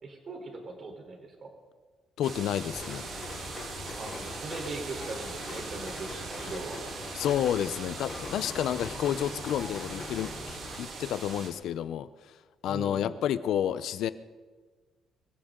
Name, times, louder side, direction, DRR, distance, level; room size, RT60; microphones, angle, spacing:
voice 1, 0.0-1.5 4.0-6.8 12.7-13.2, right 3 dB, 45° right, 3.9 m, -40 dB
voice 2, 2.2-3.1 3.8-4.0 6.4-6.5 7.1-12.1 12.6-14.1, left 10 dB, 75° left, 0.7 m, -30 dB
sound 1, 2.2-11.5, right 4 dB, 65° right, 3.1 m, -41 dB
Rain, 2.7-10.7, left 3 dB, 40° left, 6.2 m, -43 dB
24.0 x 15.0 x 3.8 m
cardioid pair, 110°, 0 cm